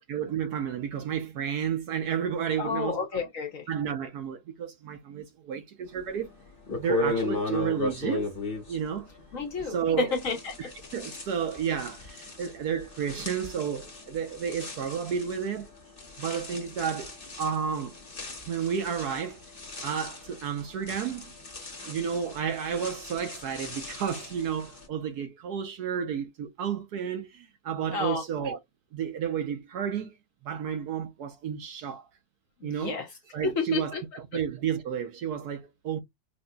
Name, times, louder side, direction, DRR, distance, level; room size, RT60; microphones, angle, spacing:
voice 1, 0.1-3.0 3.7-6.3 6.8-8.3 8.7-9.1 9.6-10.2 10.6-15.7 16.2-17.1 17.4-18.0 18.5-19.4 19.8-21.3 21.9-28.6 28.9-30.2 30.4-32.1 32.6-33.0 33.3-36.0, right 7 dB, 70° right, 1.1 m, -31 dB
voice 2, 2.6-3.7 9.3-10.7 27.9-28.2 32.6-33.1 33.4-34.0, left 5 dB, 55° left, 1.1 m, -31 dB
sound 1, 6.1-6.2 6.7-9.8 10.1-24.9, left 2 dB, 30° left, 1.6 m, -37 dB
5.2 x 2.6 x 2.2 m
omnidirectional pair, 2.1 m